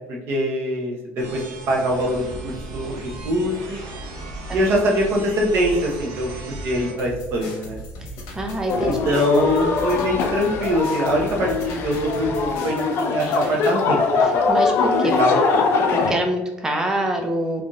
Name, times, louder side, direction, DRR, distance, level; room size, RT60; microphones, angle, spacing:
voice 1, 0.1-1.4 1.7-3.8 4.5-7.8 8.8-14.0 14.3-14.4 15.2-15.7, equal, 50° right, -1 dB, 0.9 m, -23 dB
sound 1, 1.2-6.9, right 1 dB, 75° right, 1.0 m, -35 dB
sound 2, 7.0-13.8, equal, 85° left, 1.2 m, -37 dB
voice 2, 8.3-9.0 10.0-10.1 14.5-15.1 15.9-17.7, right 1 dB, 10° right, 3 dB, 0.5 m, -25 dB
sound 3, 8.7-16.1, left 4 dB, 50° left, 0.6 m, -22 dB
3.5 x 2.7 x 3.6 m, 0.99 s
cardioid pair, 165°, 5 cm